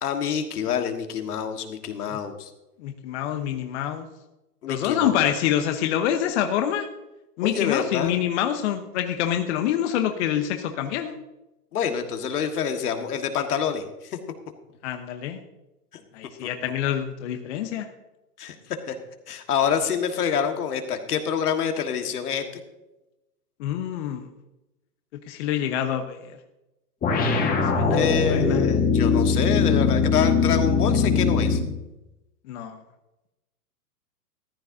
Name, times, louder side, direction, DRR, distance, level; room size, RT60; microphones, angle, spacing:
voice 1, 0.0-2.5 4.6-5.3 7.4-8.1 11.7-14.2 15.9-16.0 18.4-18.5 18.9-19.0 19.3-22.4 27.9-31.6, left 7 dB, 70° left, 6 dB, 1.6 m, -27 dB
voice 2, 2.8-4.1 4.7-6.9 7.4-11.2 14.8-15.4 16.1-17.9 23.6-24.3 25.3-26.4 27.6-28.7 32.5-32.8, left 10 dB, 45° left, 6 dB, 1.0 m, -26 dB
sound 1, 27.0-31.7, left 5 dB, 20° left, 1.5 m, -21 dB
14.5 x 11.5 x 2.7 m, 0.97 s
hypercardioid pair, 125°, 47 cm